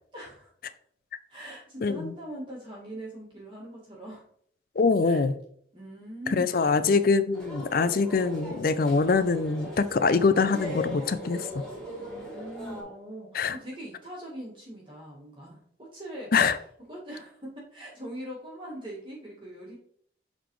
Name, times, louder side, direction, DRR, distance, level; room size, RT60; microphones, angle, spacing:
voice 1, 0.1-0.5 1.3-4.3 5.0-5.2 5.7-7.1 12.0-16.3 16.9-19.8, right 1 dB, 30° right, -6 dB, 1.9 m, -42 dB
voice 2, 1.8-2.1 4.8-5.3 6.4-11.5 13.3-13.6 16.3-16.6, left 4 dB, 50° left, 13 dB, 0.4 m, -24 dB
sound 1, 7.3-12.8, left 1 dB, 5° left, 2.4 m, -39 dB
8.1 x 4.1 x 3.1 m, 0.63 s
head